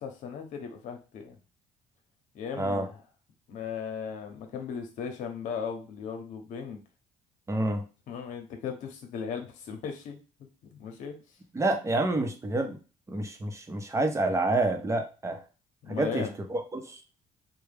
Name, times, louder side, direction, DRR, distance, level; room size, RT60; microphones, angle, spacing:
voice 1, 0.0-1.3 2.3-3.0 3.5-6.8 8.1-10.2 10.7-11.2 15.8-16.3, left 6 dB, 75° left, 4 dB, 0.9 m, -37 dB
voice 2, 2.6-2.9 7.5-7.8 11.5-12.8 13.1-15.4 15.9-17.0, right 2 dB, 20° right, 5 dB, 0.8 m, -28 dB
3.4 x 2.3 x 3.4 m, 0.32 s
supercardioid pair, 80°, 13 cm